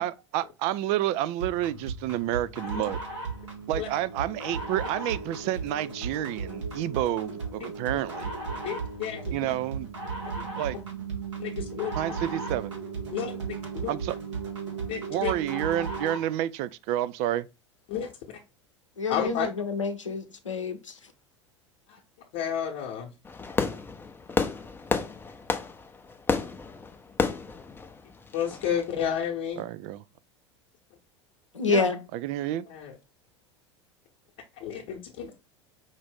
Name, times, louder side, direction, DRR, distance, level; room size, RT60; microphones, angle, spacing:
voice 1, 0.0-3.0 3.7-8.3 9.3-9.9 10.6-10.8 11.9-12.8 13.9-14.2 15.1-17.5 29.6-30.0 31.7-32.6, right 13 dB, 45° right, 0.4 m, -29 dB
sound 1, 1.4-16.3, right 4 dB, 70° right, 1.6 m, -35 dB
voice 2, 8.6-9.5 10.3-10.4 11.4-12.0 13.1-13.9 14.9-15.3 17.9-18.1 19.1-19.5 21.9-22.0 22.3-23.1 28.3-29.7 32.7-32.9 34.6-35.3, left 8 dB, 50° left, 1.0 m, -31 dB
voice 3, 19.0-21.0 31.5-32.0, left 4 dB, 85° left, 0.7 m, -28 dB
Fireworks, 23.3-28.9, left 4 dB, 15° left, 0.6 m, -31 dB
5.2 x 2.6 x 3.4 m
figure-of-eight pair, 80°, 16 cm